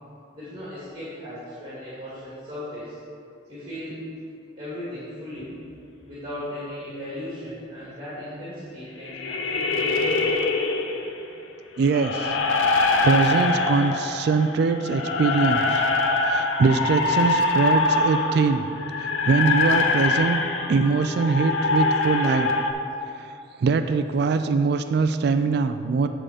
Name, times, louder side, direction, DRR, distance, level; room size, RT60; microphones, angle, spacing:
voice 1, 0.3-3.0 3.5-4.0 4.6-5.6 6.0-10.2, left 1 dB, 25° right, -10 dB, 2.0 m, -36 dB
Ghost Opera, 9.1-11.2 11.8-22.7, left 3 dB, 85° left, 0.7 m, -24 dB
voice 2, 11.8-12.4 13.0-15.8 16.2-18.7 19.0-20.4 20.7-22.5 23.2-23.3 23.6-26.1, right 4 dB, 55° right, 9 dB, 0.3 m, -22 dB
8.4 x 3.8 x 6.6 m, 2.5 s
head